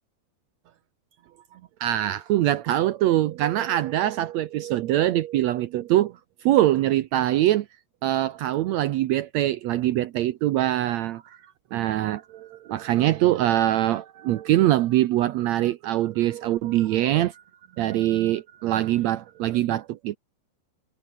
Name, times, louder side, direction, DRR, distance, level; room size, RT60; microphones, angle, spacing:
voice 1, 1.5-7.7 8.0-11.4 11.7-17.4 17.8-20.2, right 14 dB, 85° right, 1.5 m, -23 dB
omnidirectional pair, 4.1 m